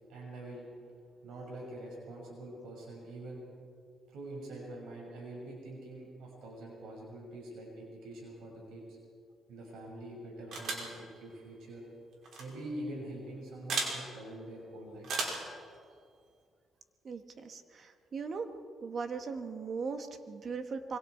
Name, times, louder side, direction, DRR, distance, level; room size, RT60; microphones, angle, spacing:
voice 1, 0.1-0.7 1.2-3.4 4.1-9.0 9.5-11.8 12.4-15.1, right 1 dB, 80° right, -2 dB, 6.0 m, -45 dB
sound 1, 10.5-10.9 12.2-12.4 13.7-14.0 15.0-15.5, right 3 dB, 65° right, 5.5 m, -34 dB
voice 2, 17.0-18.5 18.8-21.0, right 5 dB, 50° right, 7 dB, 1.8 m, -39 dB
25.0 x 23.5 x 4.7 m, 2.2 s
cardioid pair, 90°, 0 cm